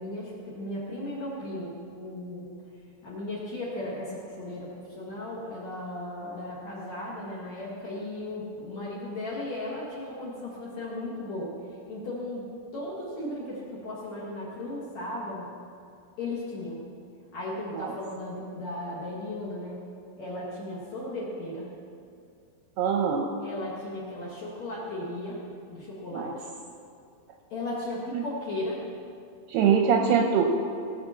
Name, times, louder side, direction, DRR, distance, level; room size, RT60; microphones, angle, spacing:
voice 1, 0.0-2.5 3.0-11.5 11.9-15.5 16.2-16.8 17.3-19.8 20.2-21.7 23.4-25.4 25.7-26.5 27.5-28.8, left 1 dB, 55° left, -5 dB, 2.2 m, -36 dB
voice 2, 22.8-23.3 26.1-26.3 28.1-28.2 29.5-30.4, right 7 dB, 80° right, 2 dB, 2.4 m, -23 dB
18.5 x 7.6 x 5.7 m, 2.4 s
omnidirectional pair, 5.3 m